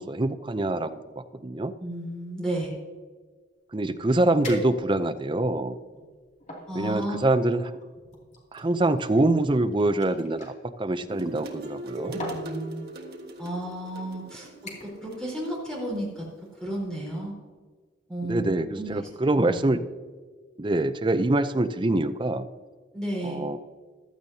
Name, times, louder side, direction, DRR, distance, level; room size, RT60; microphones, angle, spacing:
voice 1, 0.0-1.7 3.7-5.8 6.7-7.7 8.5-10.5 10.8-12.2 18.2-19.8 20.6-22.5 23.2-23.6, right 2 dB, 25° right, 10 dB, 0.5 m, -25 dB
voice 2, 1.8-2.7 6.7-7.2 12.0-12.9 13.4-14.5 14.8-16.2 16.5-17.3 18.1-19.1 19.3-19.6 22.9-23.4, right 1 dB, 5° left, -4 dB, 4.1 m, -33 dB
sound 1, 4.4-5.2 5.8-6.7 7.6-10.5 11.6-11.9 12.2-12.5 13.4-13.5 14.0-14.2 14.7-15.1 15.4-15.7 16.1-16.2, equal, 40° left, 2.5 m, -39 dB
sound 2, 11.1-16.1, right 2 dB, 55° right, 1.4 m, -39 dB
15.5 x 12.0 x 2.8 m, 1.5 s
head